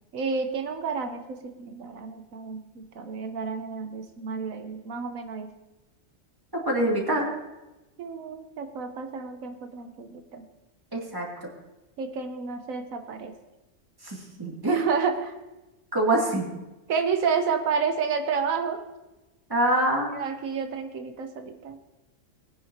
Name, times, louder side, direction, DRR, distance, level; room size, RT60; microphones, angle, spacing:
voice 1, 0.1-5.5 8.0-10.4 12.0-13.3 14.7-15.3 16.9-18.8 20.1-21.8, right 5 dB, 85° right, 6 dB, 1.3 m, -30 dB
voice 2, 6.5-7.3 10.9-11.3 14.0-14.8 15.9-16.5 19.5-20.1, right 1 dB, 15° right, -3 dB, 2.5 m, -25 dB
20.5 x 10.0 x 2.8 m, 1.0 s
omnidirectional pair, 1.4 m